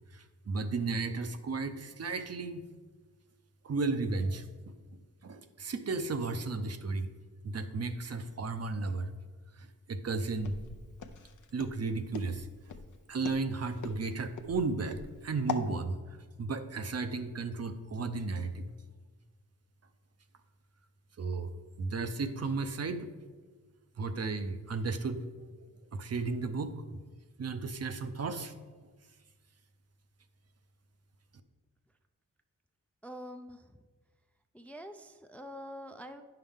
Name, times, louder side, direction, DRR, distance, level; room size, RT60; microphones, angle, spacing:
voice 1, 0.1-2.6 3.6-4.7 5.2-7.1 7.4-9.1 9.6-10.6 11.5-12.5 13.1-16.0 16.4-18.7 21.2-21.5 21.8-23.1 24.0-25.2 25.6-25.7 25.9-27.0 27.4-28.5, right 3 dB, 50° right, 8 dB, 0.6 m, -34 dB
Walk footsteps, 10.4-15.7, left 6 dB, 65° left, 0.6 m, -42 dB
voice 2, 33.0-33.8 34.5-36.2, equal, 5° left, 6 dB, 0.3 m, -45 dB
9.5 x 5.7 x 3.5 m, 1.4 s
wide cardioid pair, 90°, 33 cm